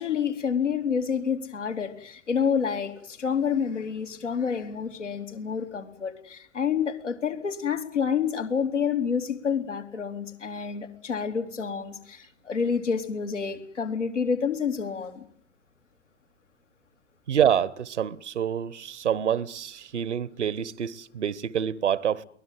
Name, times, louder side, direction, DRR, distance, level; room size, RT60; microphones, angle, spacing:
voice 1, 0.0-15.2, left 6 dB, 80° left, 3.6 m, -28 dB
voice 2, 17.3-22.2, right 9 dB, 75° right, 1.2 m, -27 dB
23.0 x 18.5 x 9.1 m
figure-of-eight pair, 90°, 36 cm